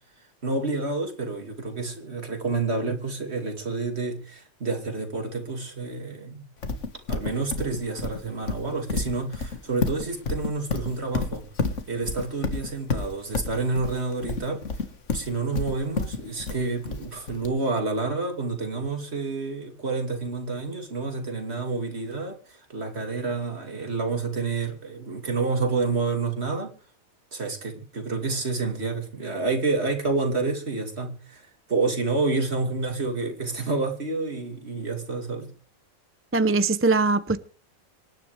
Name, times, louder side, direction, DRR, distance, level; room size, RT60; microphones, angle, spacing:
voice 1, 0.4-6.5 7.1-11.4 11.9-14.6 15.1-26.7 27.3-35.5, right 3 dB, 50° right, 2.7 m, -29 dB
Livestock farm animals working animals, 6.6-17.5, left 4 dB, 60° left, 1.9 m, -30 dB
voice 2, 36.3-37.4, right 3 dB, 15° right, 0.6 m, -21 dB
26.0 x 10.5 x 3.4 m
omnidirectional pair, 1.4 m